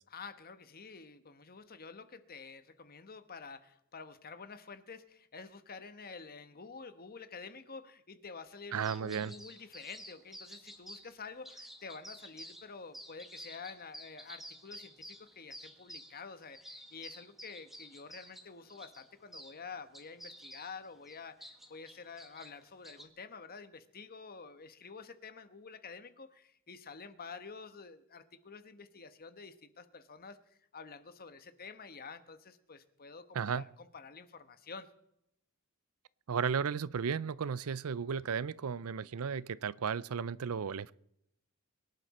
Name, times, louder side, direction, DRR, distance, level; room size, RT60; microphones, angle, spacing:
voice 1, 0.1-30.4 30.7-34.9, left 5 dB, 45° left, 1.2 m, -49 dB
voice 2, 8.7-9.3 33.3-33.6 36.3-40.9, right 6 dB, 75° right, 0.5 m, -34 dB
sound 1, 8.8-11.1 11.4-12.7 12.9-19.6 19.9-23.0, equal, ahead, 1.7 m, -51 dB
23.0 x 11.0 x 4.2 m
head